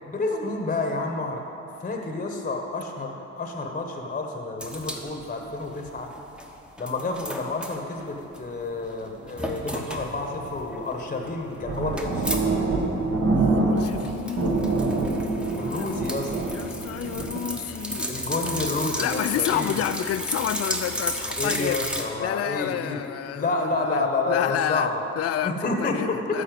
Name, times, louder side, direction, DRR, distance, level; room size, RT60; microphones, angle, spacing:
voice 1, 0.1-1.4 1.8-6.1 6.8-12.7 15.6-16.3 18.1-19.9 21.4-23.0 23.3-25.0 25.4-26.4, left 3 dB, 25° left, 3 dB, 1.0 m, -29 dB
sound 1, 4.6-6.5 6.8-8.6 8.9-9.0 9.3-10.1 10.5-12.4 12.7-12.8 13.0-22.0, equal, 5° right, 1.0 m, -33 dB
sound 2, 9.1-10.8 11.3-11.4 11.6-14.1 14.4-17.4, right 3 dB, 45° right, 1.4 m, -26 dB
voice 2, 13.3-14.8 15.7-15.9 16.5-18.1 19.0-21.9 22.2-26.4, left 11 dB, 55° left, 12 dB, 0.4 m, -30 dB
12.0 x 4.2 x 7.6 m, 2.9 s
cardioid pair, 90°, 30 cm